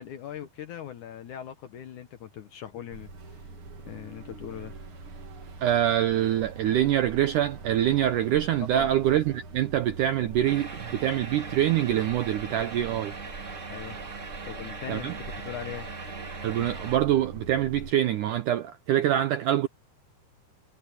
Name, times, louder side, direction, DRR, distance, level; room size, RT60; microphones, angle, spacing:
voice 1, 0.0-3.1 3.9-4.8 8.7-8.9 13.7-14.0 14.4-15.1 15.4-15.9, left 10 dB, 65° left, 2.1 m, -40 dB
sound 1, 2.9-17.9, right 3 dB, 45° right, 1.9 m, -43 dB
voice 2, 5.6-13.1 14.9-15.1 16.4-19.7, right 12 dB, 80° right, 1.8 m, -25 dB
sound 2, 10.4-17.0, right 4 dB, 25° right, 1.7 m, -40 dB
omnidirectional pair, 4.6 m